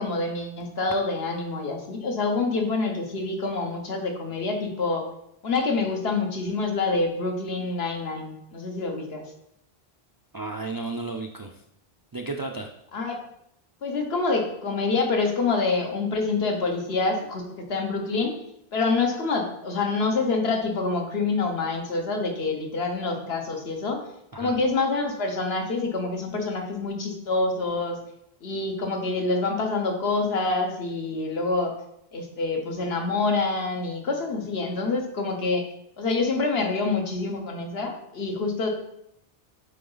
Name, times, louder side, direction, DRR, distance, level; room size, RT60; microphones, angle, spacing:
voice 1, 0.0-5.0 5.4-9.2 12.9-13.2 13.8-18.3 18.7-24.0 24.4-28.0 28.4-31.8 32.1-35.6 36.0-38.7, left 3 dB, 75° left, 3 dB, 1.3 m, -26 dB
voice 2, 10.3-11.6 12.1-12.7 24.3-24.5, right 3 dB, 40° right, 3 dB, 0.3 m, -33 dB
8.3 x 3.8 x 4.0 m, 0.78 s
omnidirectional pair, 1.0 m